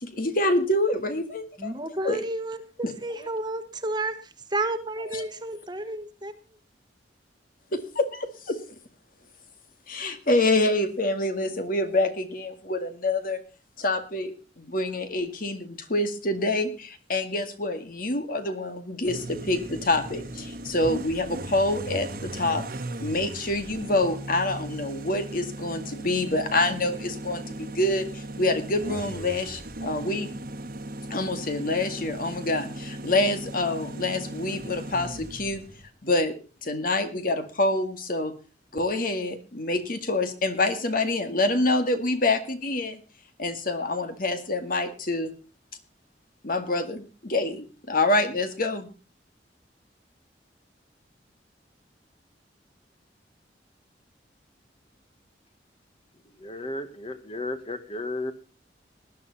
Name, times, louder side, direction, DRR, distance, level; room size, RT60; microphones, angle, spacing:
voice 1, 0.0-1.7 2.0-2.3 2.8-2.9 5.1-5.2 7.7-8.6 9.9-13.4 13.8-14.3 14.6-22.6 23.0-30.3 31.1-35.6 36.0-36.3 36.6-38.3 38.7-43.0 43.4-45.3 46.4-48.9, left 2 dB, 50° left, 9 dB, 2.0 m, -26 dB
voice 2, 1.6-6.4, right 2 dB, 25° right, 10 dB, 1.4 m, -31 dB
sound 1, 19.0-35.9, right 1 dB, 55° right, 1.4 m, -37 dB
voice 3, 56.2-58.3, left 2 dB, 30° left, 10 dB, 1.6 m, -34 dB
19.5 x 11.0 x 4.1 m, 0.34 s
head